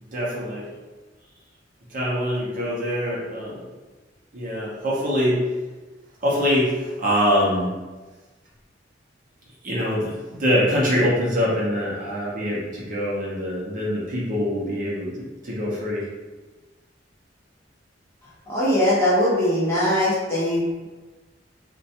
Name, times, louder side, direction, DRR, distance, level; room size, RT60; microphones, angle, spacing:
voice 1, 0.1-0.7 1.9-3.7 4.3-5.5 6.2-7.7 9.6-16.1, equal, 45° right, -5 dB, 0.6 m, -24 dB
voice 2, 18.5-20.9, left 1 dB, 15° left, -10 dB, 0.9 m, -21 dB
2.4 x 2.2 x 2.8 m, 1.2 s
head